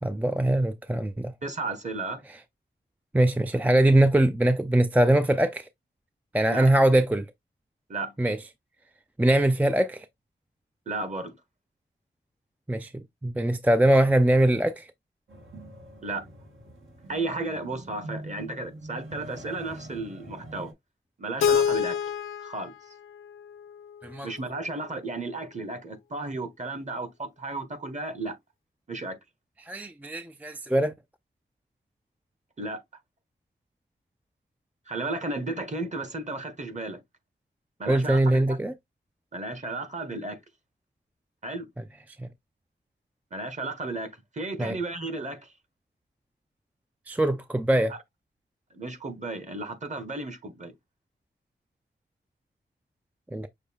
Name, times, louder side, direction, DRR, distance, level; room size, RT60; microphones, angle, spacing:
voice 1, 0.0-1.3 3.1-5.7 6.3-7.3 8.2-8.4 9.2-10.1 12.7-14.9 24.0-24.3 29.6-30.9 37.9-38.7 42.2-42.3 44.6-44.8 47.1-47.9 53.3-53.5, right 1 dB, 10° right, 0.3 m, -22 dB
voice 2, 1.4-2.2 6.5-6.7 7.9-8.1 10.9-11.3 16.0-16.3 17.1-20.7 21.2-22.0 22.4-22.7 24.2-28.4 28.9-29.2 32.6-32.8 34.9-37.0 37.8-38.6 39.3-40.4 41.4-41.7 43.3-44.1 44.3-45.4 47.9-48.0 48.7-50.7, right 2 dB, 35° right, 1.3 m, -33 dB
sound 1, 15.3-20.7, right 1 dB, 75° right, 2.3 m, -44 dB
Keyboard (musical), 21.4-24.3, left 8 dB, 80° left, 0.5 m, -28 dB
6.5 x 2.2 x 3.5 m
wide cardioid pair, 95°, 21 cm